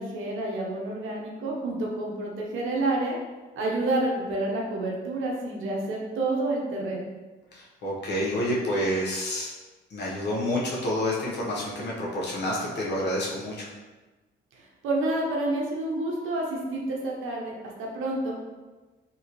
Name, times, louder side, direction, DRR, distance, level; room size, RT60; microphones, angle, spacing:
voice 1, 0.0-3.2 3.6-7.1 14.5-17.5 17.8-18.4, right 2 dB, 85° right, -2 dB, 0.8 m, -29 dB
voice 2, 7.5-9.5 9.9-13.7, left 1 dB, 60° left, -4 dB, 0.9 m, -28 dB
3.0 x 2.8 x 2.9 m, 1.2 s
cardioid pair, 90°, 20 cm